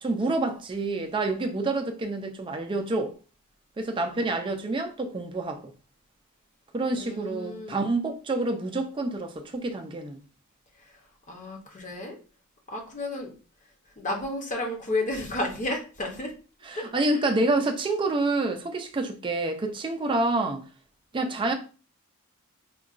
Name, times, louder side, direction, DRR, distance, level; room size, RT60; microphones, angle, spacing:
voice 1, 0.0-3.1 3.8-5.6 6.7-10.2 16.7-20.6 21.1-21.5, right 2 dB, 20° right, 0.3 m, -28 dB
voice 2, 6.9-7.9 10.8-11.0 11.3-12.2 12.7-13.3 14.0-16.3 16.7-17.2, left 2 dB, 35° left, 0.7 m, -32 dB
3.7 x 2.2 x 2.4 m
head